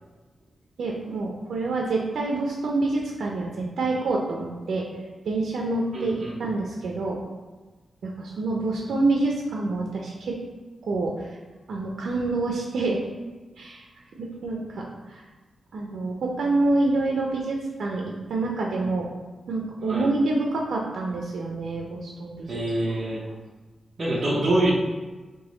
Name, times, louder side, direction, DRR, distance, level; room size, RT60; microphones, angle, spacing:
voice 1, 0.8-4.9 5.3-7.2 8.0-10.4 10.9-11.3 11.7-13.1 13.6-13.8 14.2-15.2 15.7-19.1 19.5-22.5, right 2 dB, 80° right, -1 dB, 0.5 m, -27 dB
voice 2, 5.9-6.4 19.9-20.1 22.5-23.2 24.0-24.7, right 1 dB, 35° right, -5 dB, 0.7 m, -25 dB
3.8 x 3.0 x 3.9 m, 1.3 s
wide cardioid pair, 160°, 0 cm